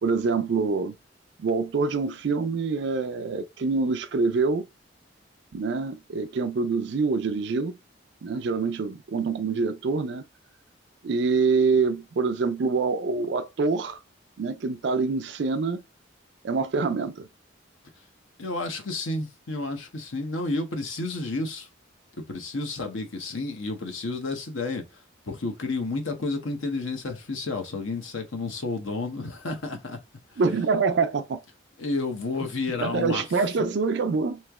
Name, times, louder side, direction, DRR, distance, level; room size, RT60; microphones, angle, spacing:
voice 1, 0.0-1.0 1.4-4.7 5.5-7.7 8.2-10.2 11.0-14.0 14.4-15.8 16.4-17.3 30.4-31.4 32.8-34.4, right 4 dB, 60° right, 0.4 m, -25 dB
voice 2, 18.4-21.7 22.1-24.8 25.3-30.0 30.3-30.4 31.8-33.2, left 3 dB, 80° left, 0.9 m, -31 dB
3.1 x 2.8 x 3.5 m
head